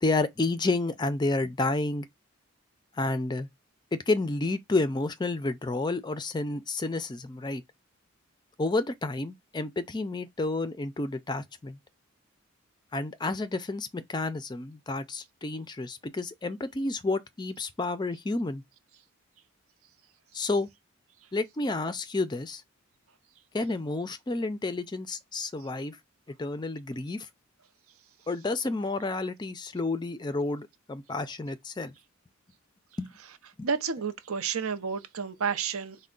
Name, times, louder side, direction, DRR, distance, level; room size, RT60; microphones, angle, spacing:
voice 1, 0.0-2.1 2.9-3.5 3.9-7.6 8.6-11.8 12.9-18.6 20.3-20.7 21.3-22.6 23.5-26.0 26.4-27.3 28.3-31.9 33.0-33.1 33.6-33.7, left 2 dB, 20° left, 0.4 m, -30 dB
voice 2, 33.6-36.0, right 6 dB, 80° right, 0.6 m, -30 dB
4.4 x 2.1 x 3.7 m
head